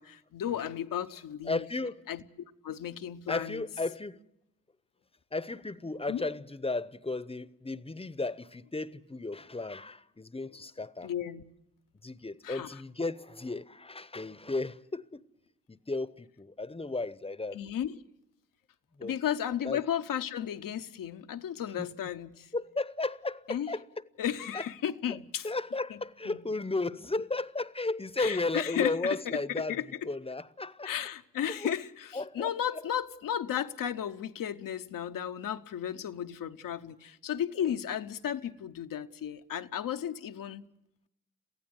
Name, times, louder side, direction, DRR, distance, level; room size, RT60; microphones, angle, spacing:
voice 1, 0.0-1.6 2.1-2.2 2.6-3.6 6.1-6.2 11.0-11.4 12.4-12.8 17.5-18.0 19.0-22.5 23.5-23.7 24.2-25.5 25.9-26.0 26.3-26.4 28.2-30.1 30.8-40.6, left 10 dB, 75° left, 0.8 m, -34 dB
voice 2, 1.5-2.0 3.3-4.2 5.3-11.1 12.0-15.3 15.7-17.6 19.0-19.1 19.6-19.8 21.8-21.9 22.5-23.8 24.5-24.6 25.4-29.8 30.0-30.9 31.6-31.7 32.1-32.5, left 3 dB, 15° left, 0.8 m, -34 dB
23.5 x 15.5 x 7.9 m
supercardioid pair, 50°, 33 cm